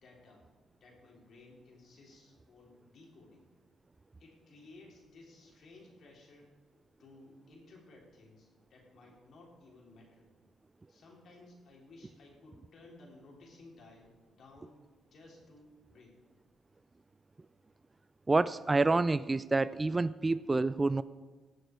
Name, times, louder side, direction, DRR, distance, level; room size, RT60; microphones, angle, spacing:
voice 1, 0.0-0.5 0.8-3.5 4.2-6.6 7.0-10.3 10.9-14.8 15.1-16.1, left 2 dB, 60° left, -1 dB, 3.6 m, -57 dB
voice 2, 18.3-21.0, right 3 dB, 20° right, 16 dB, 0.3 m, -28 dB
18.0 x 6.6 x 4.6 m, 1.3 s
cardioid pair, 90°, 0 cm